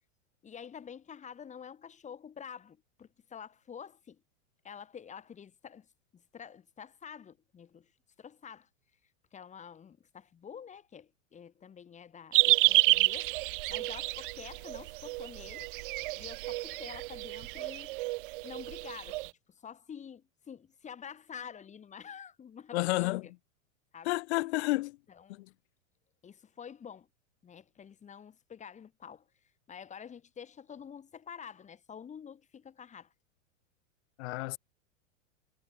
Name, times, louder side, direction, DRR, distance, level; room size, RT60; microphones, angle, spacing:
voice 1, 0.4-4.2 4.6-5.9 6.1-7.9 8.2-8.7 9.3-13.3 13.7-15.7 16.1-17.9 18.4-19.2 19.5-23.3 23.9-24.1 25.1-25.4 26.2-27.1 27.4-33.1, left 7 dB, 15° left, 5.5 m, -48 dB
sound 1, 12.3-19.3, right 22 dB, 40° right, 0.5 m, -30 dB
voice 2, 22.7-23.3 24.0-25.0 25.3-25.5 34.2-34.6, left 21 dB, 55° left, 4.4 m, -30 dB
supercardioid pair, 145°, 40 cm